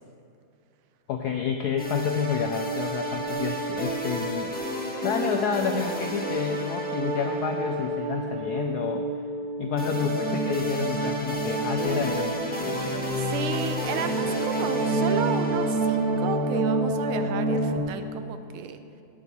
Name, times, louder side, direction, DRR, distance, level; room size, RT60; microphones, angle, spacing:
voice 1, 1.1-4.6 5.0-9.1 9.6-12.5, left 7 dB, 85° left, 4 dB, 0.8 m, -29 dB
sound 1, 1.8-17.8, right 1 dB, 10° left, 0.6 m, -28 dB
voice 2, 13.1-18.8, right 7 dB, 90° right, 9 dB, 1.5 m, -32 dB
16.0 x 6.2 x 4.2 m, 2.7 s
omnidirectional pair, 2.3 m